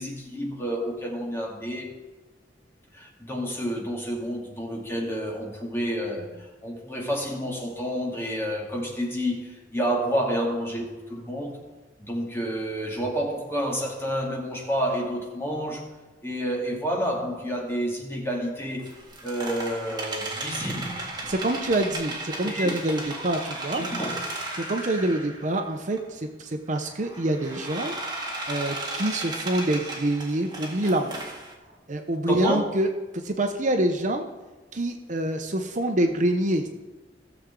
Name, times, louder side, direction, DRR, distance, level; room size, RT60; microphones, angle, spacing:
voice 1, 0.0-1.9 2.9-11.6 12.0-15.9 16.2-18.9 19.2-21.0 22.4-22.8 23.7-24.1 32.3-32.6, equal, 15° left, 2.5 m, -29 dB
sound 1, 18.8-25.6 26.0-26.1 26.8-31.5, right 2 dB, 25° right, 1.9 m, -35 dB
voice 2, 21.3-23.8 24.6-27.9 28.5-31.1 31.9-32.9 33.1-34.3 34.7-36.8, right 1 dB, 45° right, 0.8 m, -26 dB
16.5 x 7.2 x 3.8 m
head